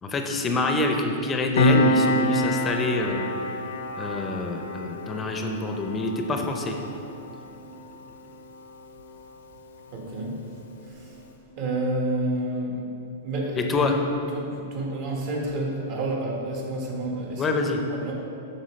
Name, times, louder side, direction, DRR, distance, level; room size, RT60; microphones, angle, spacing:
voice 1, 0.0-3.3 4.0-6.8 13.6-14.0 17.4-17.8, left 2 dB, 20° left, 3 dB, 0.5 m, -26 dB
Piano, 1.6-8.6 8.9-9.1, left 1 dB, 80° left, 0.6 m, -26 dB
voice 2, 9.9-10.4 10.9-11.3 11.6-12.9 13.2-13.9 14.3-17.6 17.9-18.1, right 1 dB, 50° right, -1 dB, 1.4 m, -29 dB
7.3 x 6.3 x 3.2 m, 2.8 s
hypercardioid pair, 130°, 0 cm